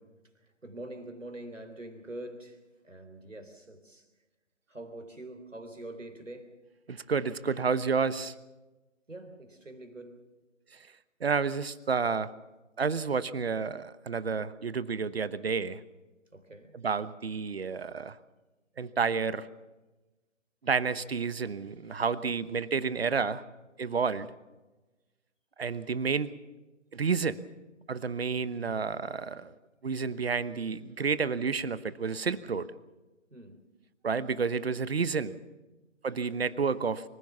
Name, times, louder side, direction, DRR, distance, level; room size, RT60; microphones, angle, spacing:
voice 1, 0.6-2.6 2.8-4.0 4.7-6.6 9.1-10.2 16.3-16.8 33.3-33.6, right 1 dB, 85° right, 3.8 m, -44 dB
voice 2, 6.9-8.3 10.7-10.9 11.2-12.3 12.8-15.8 16.7-18.2 18.8-19.5 20.6-23.4 23.8-24.3 25.6-26.3 26.9-27.4 27.9-29.5 29.8-32.7 34.0-35.3 36.0-37.0, right 5 dB, 55° right, 1.1 m, -30 dB
25.0 x 15.5 x 7.1 m
figure-of-eight pair, 150°, 37 cm